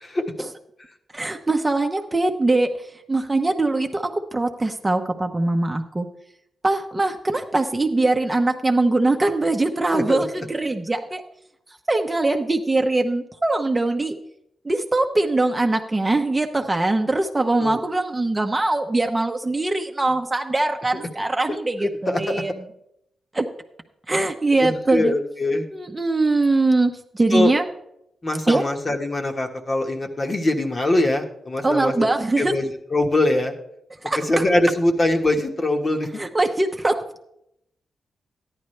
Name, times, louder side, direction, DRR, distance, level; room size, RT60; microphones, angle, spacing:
voice 1, 1.1-2.7 3.1-6.1 6.6-11.2 11.9-14.2 14.6-22.5 23.3-23.5 24.1-25.1 25.7-27.6 28.5-28.6 31.6-32.5 34.0-34.4 36.2-37.0, right 2 dB, 20° right, 4 dB, 0.9 m, -22 dB
voice 2, 9.9-10.2 17.6-17.8 21.8-22.4 24.6-25.7 27.3-27.5 28.2-32.1 32.4-33.5 34.2-36.1, left 2 dB, 35° left, 3 dB, 1.4 m, -22 dB
13.5 x 10.5 x 3.3 m, 0.77 s
cardioid pair, 85°, 0 cm